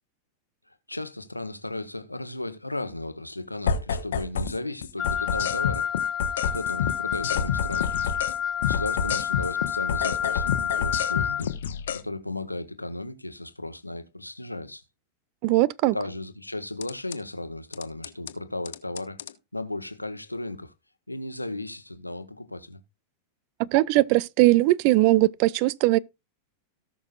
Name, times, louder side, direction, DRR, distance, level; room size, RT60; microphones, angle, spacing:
voice 1, 0.7-5.9 6.5-7.9 8.6-11.5 11.9-14.8 15.9-19.2 19.5-20.7 21.1-22.8, left 2 dB, 85° left, 1.2 m, -35 dB
sound 1, 3.7-4.6 4.8-8.4 8.6-12.0 16.8-17.2 17.7-18.3 18.7-19.3, left 7 dB, 60° left, 1.1 m, -29 dB
Wind instrument woodwind instrument, 5.0-11.4, left 8 dB, 25° left, 0.5 m, -29 dB
voice 2, 15.4-16.0 23.6-26.0, right 18 dB, 45° right, 0.5 m, -20 dB
18.0 x 6.2 x 2.4 m
figure-of-eight pair, 90°, 0 cm